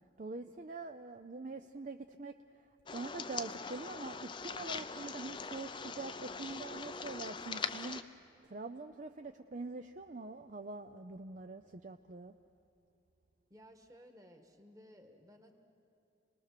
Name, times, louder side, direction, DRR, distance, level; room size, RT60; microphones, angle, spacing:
voice 1, 0.2-2.3 2.9-12.3, right 3 dB, 40° right, 6 dB, 0.5 m, -44 dB
sound 1, 2.9-8.0, left 5 dB, 25° left, 0.5 m, -42 dB
voice 2, 13.5-15.5, equal, 15° right, 5 dB, 1.6 m, -58 dB
28.5 x 20.0 x 6.7 m, 2.9 s
head